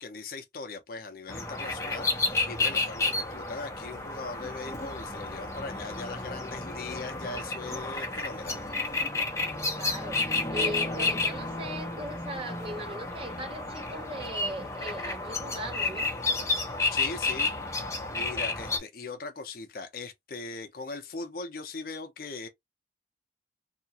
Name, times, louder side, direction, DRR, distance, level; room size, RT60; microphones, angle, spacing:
voice 1, 0.0-8.6 16.9-17.5 18.1-22.5, left 3 dB, 50° left, 0.5 m, -40 dB
sound 1, 1.3-18.8, left 3 dB, 15° left, 0.7 m, -31 dB
voice 2, 9.7-10.2 10.5-16.1, right 1 dB, 30° right, 0.6 m, -39 dB
2.7 x 2.4 x 2.8 m
head